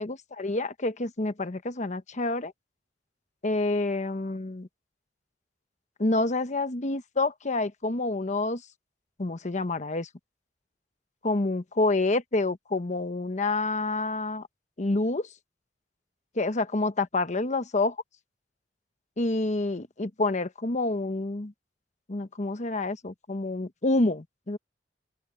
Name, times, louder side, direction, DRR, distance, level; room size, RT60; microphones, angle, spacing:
voice 1, 0.0-2.5 3.4-4.7 6.0-8.6 9.2-10.1 11.2-14.4 14.8-15.3 16.3-18.0 19.2-21.5 22.1-24.6, left 2 dB, 40° left, 1.0 m, -28 dB
open air
head